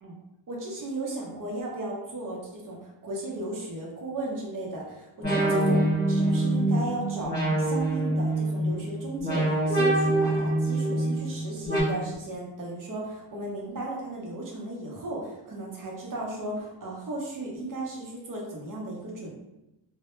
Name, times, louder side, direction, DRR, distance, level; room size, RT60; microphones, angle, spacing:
voice 1, 0.5-5.8 6.1-19.4, right 2 dB, 45° right, -2 dB, 0.6 m, -35 dB
sound 1, 5.2-11.8, right 1 dB, 20° left, 1.1 m, -25 dB
2.1 x 2.0 x 3.0 m, 0.95 s
wide cardioid pair, 155°, 45 cm